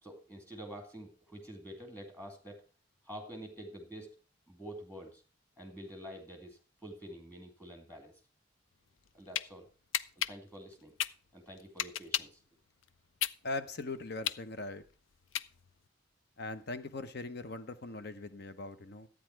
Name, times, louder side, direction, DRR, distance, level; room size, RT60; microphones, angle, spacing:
voice 1, 0.0-2.6 3.0-4.2 4.5-5.2 5.6-8.1 9.1-9.7 10.2-10.9 11.3-12.4, equal, 10° left, 2 dB, 2.3 m, -48 dB
sound 1, 8.9-9.5 9.9-12.4 12.8-15.9, left 11 dB, 85° left, 0.5 m, -35 dB
voice 2, 13.4-14.8 16.4-19.1, left 2 dB, 55° left, 11 dB, 0.8 m, -40 dB
12.5 x 8.9 x 4.5 m, 0.36 s
head